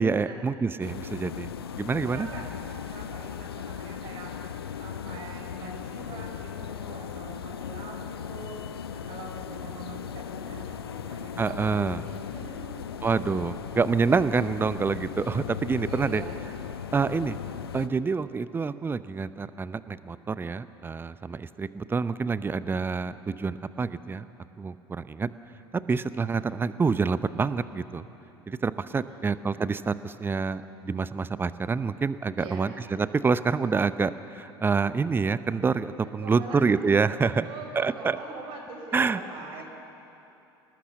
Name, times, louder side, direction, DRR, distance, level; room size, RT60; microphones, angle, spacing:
voice 1, 0.0-1.5 1.8-2.3 11.4-12.0 13.0-16.2 16.9-17.4 17.7-24.3 24.6-25.3 25.7-28.1 28.5-37.5 37.8-38.2 38.9-39.2, right 5 dB, 15° right, 15 dB, 0.7 m, -27 dB
sound 1, 0.8-17.9, left 8 dB, 75° left, 0.8 m, -37 dB
voice 2, 1.2-1.6 2.0-2.5 2.8-4.3 4.8-8.7 8.9-12.9 15.9-16.5 29.0-29.3 32.4-32.7 36.0-37.0 37.4-39.6, right 3 dB, 45° right, 0 dB, 5.3 m, -43 dB
27.5 x 19.0 x 7.1 m, 2.9 s
figure-of-eight pair, 75°, 13 cm